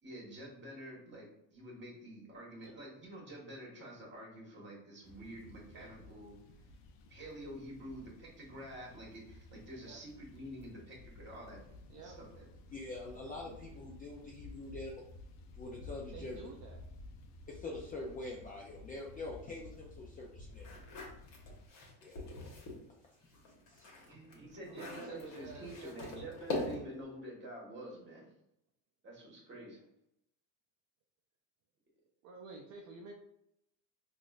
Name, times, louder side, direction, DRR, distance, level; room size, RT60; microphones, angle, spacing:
voice 1, 0.0-6.4 7.1-11.6 12.0-12.5 24.1-28.3 29.0-29.8, right 1 dB, 25° right, -3 dB, 1.4 m, -48 dB
sound 1, 5.0-21.7, left 2 dB, 70° left, 0.6 m, -54 dB
voice 2, 12.7-14.9 15.5-16.5 17.5-20.7 22.0-22.2 23.7-23.9, left 2 dB, 20° left, -2 dB, 0.3 m, -45 dB
voice 3, 16.1-16.8 24.7-26.3 32.2-33.1, right 4 dB, 45° right, 0 dB, 0.5 m, -51 dB
sound 2, 20.6-22.8 23.2-27.0, left 2 dB, 50° left, 1.2 m, -43 dB
3.9 x 2.5 x 2.4 m, 0.79 s
supercardioid pair, 115°, 42 cm